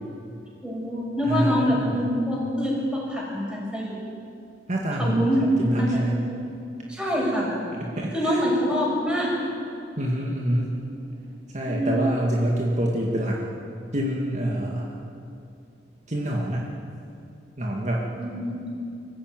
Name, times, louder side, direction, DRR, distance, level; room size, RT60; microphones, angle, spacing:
voice 1, 0.6-4.0 5.0-6.0 6.9-7.5 8.1-9.3 11.6-12.0 18.2-18.6, equal, 5° right, -3 dB, 6.4 m, -25 dB
voice 2, 1.2-2.0 4.7-6.2 7.8-8.4 10.0-10.8 11.5-13.4 13.9-14.9 16.1-16.7 17.6-18.1, right 1 dB, 45° right, -2 dB, 2.1 m, -26 dB
23.5 x 14.5 x 9.2 m, 2.6 s
head